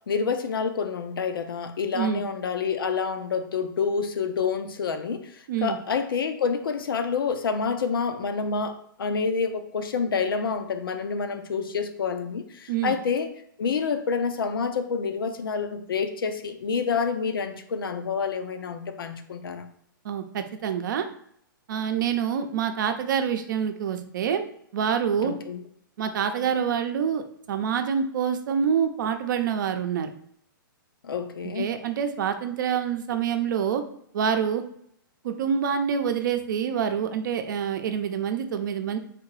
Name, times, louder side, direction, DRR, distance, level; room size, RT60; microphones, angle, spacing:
voice 1, 0.1-5.2 5.6-13.3 13.6-19.7 25.2-25.6 31.0-31.7, left 5 dB, 80° left, 8 dB, 0.6 m, -28 dB
voice 2, 20.0-21.1 21.7-24.4 24.7-25.3 26.0-27.2 27.5-30.1 31.4-33.8 34.1-34.6 35.2-39.0, right 7 dB, 60° right, 7 dB, 0.6 m, -26 dB
3.4 x 2.8 x 4.7 m, 0.69 s
hypercardioid pair, 140°, 12 cm